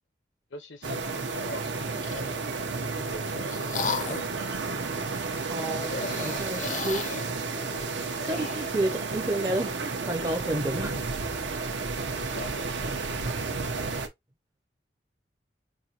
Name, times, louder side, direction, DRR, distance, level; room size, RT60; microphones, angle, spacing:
voice 1, 0.5-2.4 3.1-4.5 8.8-9.0 12.2-13.2, left 2 dB, 85° left, 0.9 m, -44 dB
sound 1, 0.8-14.1, right 4 dB, 85° right, 0.9 m, -32 dB
sound 2, 1.7-2.3 3.0-4.4 5.8-8.8, left 4 dB, 40° left, 0.5 m, -35 dB
voice 2, 5.1-7.1 8.2-11.0, right 1 dB, 20° right, 0.5 m, -31 dB
5.3 x 2.6 x 2.8 m
head